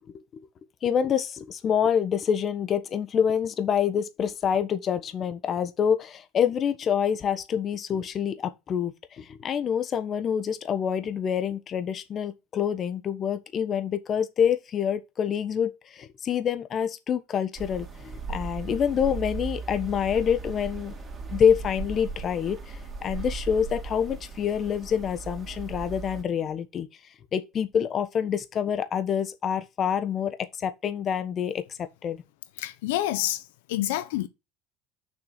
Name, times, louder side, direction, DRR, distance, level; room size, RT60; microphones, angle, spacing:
voice 1, 0.8-20.9 21.3-26.9 27.3-32.2, left 8 dB, 40° left, 1.3 m, -27 dB
sound 1, 17.6-26.2, right 4 dB, 25° right, 3.5 m, -37 dB
voice 2, 32.6-34.3, left 14 dB, 90° left, 0.8 m, -28 dB
7.0 x 5.9 x 6.1 m
supercardioid pair, 100°, 0 cm